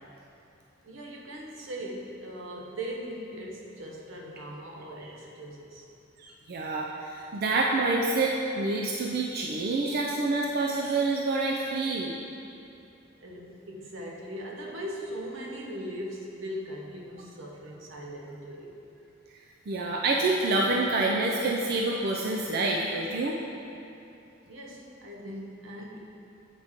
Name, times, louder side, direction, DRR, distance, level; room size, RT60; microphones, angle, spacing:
voice 1, 0.8-5.9 13.2-18.8 24.5-26.0, equal, 85° right, -1 dB, 0.9 m, -39 dB
voice 2, 6.2-12.1 19.7-23.4, right 2 dB, 55° right, -1 dB, 0.5 m, -27 dB
8.1 x 5.0 x 3.6 m, 2.7 s
head